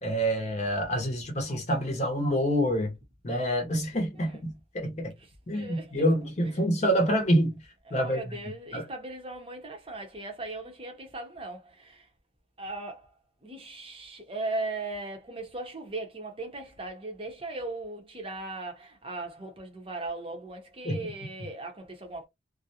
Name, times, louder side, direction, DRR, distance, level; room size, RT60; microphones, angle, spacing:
voice 1, 0.0-2.9 3.2-5.1 5.5-7.6 7.9-8.2 8.7-8.8 20.8-21.1, equal, 35° left, 0.7 m, -27 dB
voice 2, 5.5-5.9 7.9-12.1 12.6-13.1 13.4-22.3, right 2 dB, 25° right, 0.7 m, -38 dB
2.4 x 2.1 x 2.7 m
head